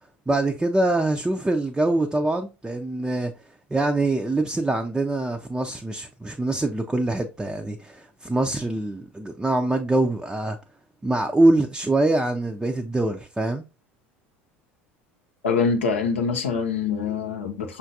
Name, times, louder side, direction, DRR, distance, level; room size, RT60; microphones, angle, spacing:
voice 1, 0.3-3.3 3.7-10.6 11.0-13.6, right 2 dB, 10° right, 0.4 m, -24 dB
voice 2, 15.4-17.8, left 5 dB, 85° left, 0.7 m, -24 dB
5.6 x 2.4 x 2.7 m
hypercardioid pair, 70°, 6 cm